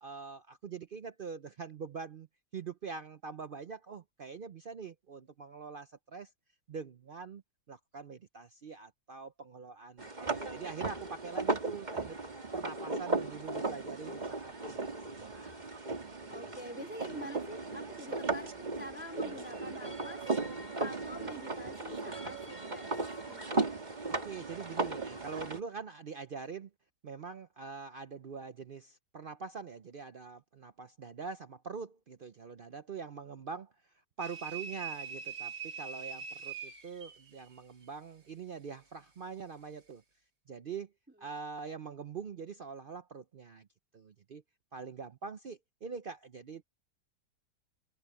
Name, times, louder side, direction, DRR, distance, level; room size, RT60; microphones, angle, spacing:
voice 1, 0.0-2.3 2.5-6.3 6.7-7.4 7.7-12.2 12.5-15.6 24.1-26.7 27.0-33.7 34.2-40.0 40.5-40.9 41.2-43.7 43.9-44.4 44.7-46.6, right 5 dB, 60° right, 0.5 m, -44 dB
sound 1, 10.0-25.6, right 3 dB, 25° right, 2.0 m, -36 dB
voice 2, 16.3-20.3 20.5-23.0 23.3-23.8, equal, 5° right, 3.5 m, -47 dB
sound 2, 34.2-37.5, right 6 dB, 90° right, 3.7 m, -42 dB
omnidirectional pair, 1.7 m